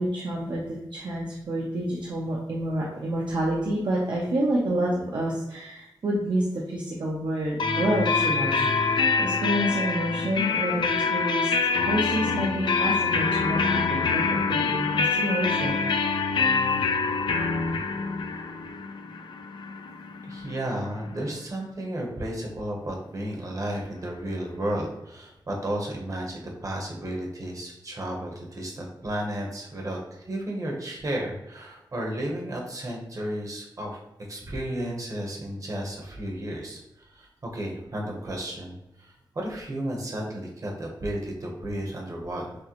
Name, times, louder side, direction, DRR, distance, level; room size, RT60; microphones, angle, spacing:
voice 1, 0.0-11.5 11.8-15.8, right 1 dB, 75° right, -4 dB, 0.8 m, -28 dB
sound 1, 7.6-21.2, left 4 dB, 85° left, 0.4 m, -25 dB
voice 2, 20.2-34.0 34.3-42.5, right 1 dB, 45° right, -1 dB, 1.0 m, -33 dB
6.2 x 2.1 x 3.0 m, 0.91 s
wide cardioid pair, 130°, 8 cm